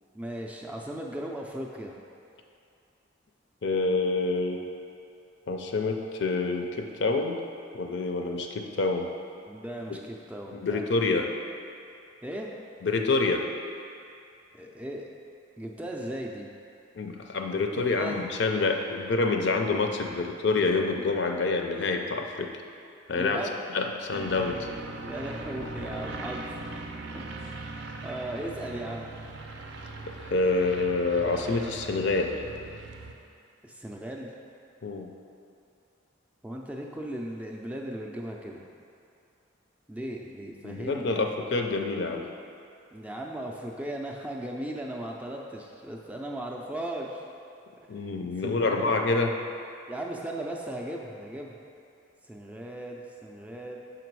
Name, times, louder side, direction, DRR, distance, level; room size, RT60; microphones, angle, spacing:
voice 1, 0.1-1.9 9.5-10.8 12.2-12.5 14.5-15.1 15.6-16.5 17.7-18.2 20.1-20.4 23.1-23.6 25.0-26.5 27.1-27.4 28.0-29.2 33.6-34.3 36.4-38.6 39.9-41.2 42.9-47.2 48.4-48.9 49.9-51.5 52.3-53.8, right 1 dB, 5° right, -1 dB, 0.4 m, -37 dB
voice 2, 3.6-4.6 5.5-7.4 7.7-9.1 10.5-11.3 12.8-13.4 16.9-22.5 23.1-23.4 23.7-24.7 30.1-32.3 34.8-35.1 40.6-42.3 47.9-49.3, left 3 dB, 60° left, 3 dB, 0.5 m, -27 dB
sound 1, 24.1-33.1, right 2 dB, 65° right, 0.5 m, -40 dB
5.9 x 5.0 x 4.6 m, 2.5 s
head